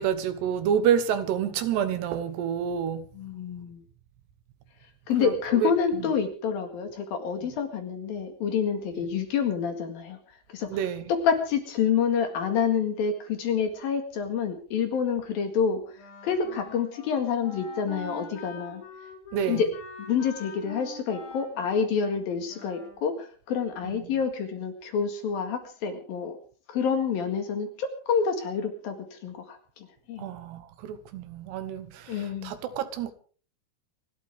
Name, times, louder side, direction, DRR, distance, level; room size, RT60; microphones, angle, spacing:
voice 1, 0.0-3.1 5.2-6.1 10.7-11.1 19.3-19.6 23.8-24.1 30.2-33.1, right 8 dB, 75° right, 3.1 m, -28 dB
voice 2, 3.1-3.8 5.1-10.2 10.5-15.8 16.2-18.8 19.4-19.7 20.0-26.4 26.7-30.3 32.1-32.5, left 6 dB, 60° left, 3.4 m, -28 dB
Wind instrument woodwind instrument, 16.0-23.0, left 2 dB, 85° left, 8.4 m, -44 dB
29.5 x 12.5 x 3.6 m
omnidirectional pair, 5.1 m